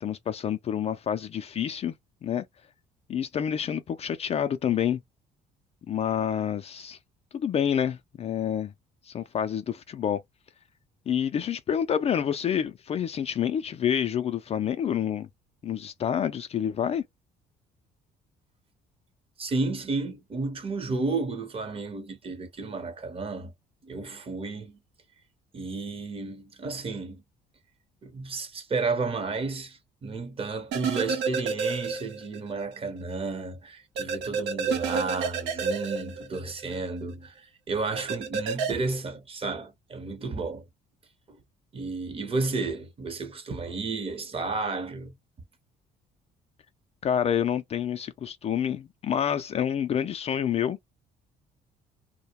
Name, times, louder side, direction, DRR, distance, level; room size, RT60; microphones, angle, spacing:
voice 1, 0.0-1.9 2.2-2.4 3.1-5.0 5.9-7.0 7.3-8.7 9.1-10.2 11.1-15.3 15.6-17.0 47.0-50.8, left 9 dB, 40° left, 0.4 m, -28 dB
voice 2, 19.4-23.5 23.8-24.8 25.5-27.2 28.0-40.6 41.3-41.4 41.7-45.1, right 3 dB, 35° right, 0.8 m, -32 dB
sound 1, 30.7-32.4 32.7-32.8 34.0-36.8 38.0-38.7, right 5 dB, 90° right, 0.8 m, -29 dB
2.2 x 2.1 x 2.8 m
cardioid pair, 110°, 17 cm